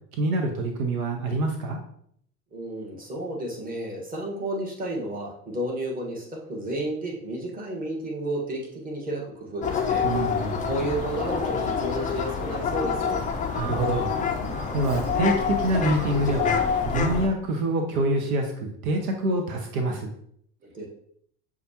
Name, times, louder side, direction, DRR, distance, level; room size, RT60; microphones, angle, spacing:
voice 1, 0.1-1.8 10.0-10.7 13.6-14.1 14.7-16.6 16.9-20.1, right 1 dB, 70° right, 3 dB, 0.8 m, -26 dB
voice 2, 2.5-10.0 10.7-13.2 20.6-20.9, right 1 dB, 20° right, -2 dB, 1.4 m, -32 dB
sound 1, 9.6-17.3, left 6 dB, 20° left, 0.4 m, -27 dB
Bird vocalization bird call bird song, 9.6-16.9, right 2 dB, 45° right, 1.2 m, -44 dB
6.5 x 2.4 x 2.9 m, 0.67 s
hypercardioid pair, 75°, 44 cm